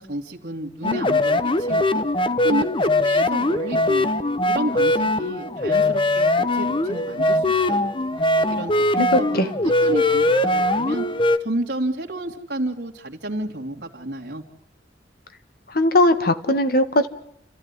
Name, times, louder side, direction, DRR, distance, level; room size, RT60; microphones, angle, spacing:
voice 1, 0.0-2.0 2.4-4.1 4.4-11.1 11.4-14.4, right 1 dB, 65° right, -1 dB, 2.5 m, -31 dB
sound 1, 0.8-11.4, left 1 dB, 30° left, 1.1 m, -21 dB
voice 2, 9.1-9.5 15.7-17.1, left 1 dB, 55° left, 10 dB, 1.8 m, -19 dB
30.0 x 15.0 x 9.8 m, 0.76 s
head